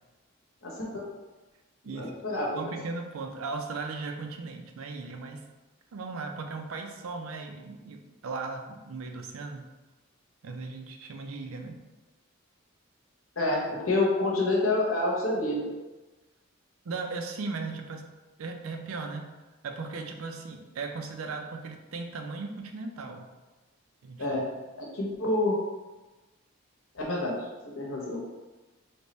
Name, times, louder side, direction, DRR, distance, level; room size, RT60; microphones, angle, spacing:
voice 1, 0.6-1.0 1.9-2.7 13.4-15.7 24.2-24.4 24.8-25.6 26.9-27.4 27.8-28.2, left 2 dB, 80° left, -3 dB, 0.9 m, -28 dB
voice 2, 1.8-2.2 2.5-5.4 5.9-9.7 10.4-11.8 16.8-18.1 18.4-19.3 19.6-23.3 24.0-24.5, right 4 dB, 85° right, 4 dB, 0.4 m, -37 dB
3.3 x 2.1 x 3.9 m, 1.2 s
head